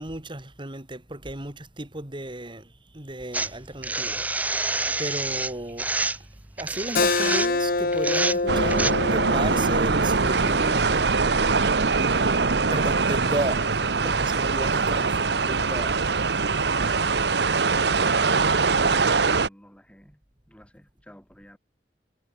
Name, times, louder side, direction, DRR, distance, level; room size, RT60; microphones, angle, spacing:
voice 1, 0.0-2.7 2.9-4.2 5.0-6.2 6.6-11.0 11.8-13.6 14.0-16.0, right 1 dB, 30° right, 3.0 m, -34 dB
sound 1, 3.3-8.9, right 3 dB, 10° right, 0.5 m, -28 dB
Keyboard (musical), 7.0-12.1, left 3 dB, 55° left, 1.8 m, -27 dB
sound 2, 8.5-19.5, right 4 dB, 70° right, 1.1 m, -22 dB
voice 2, 18.4-21.6, equal, 5° left, 6.4 m, -50 dB
head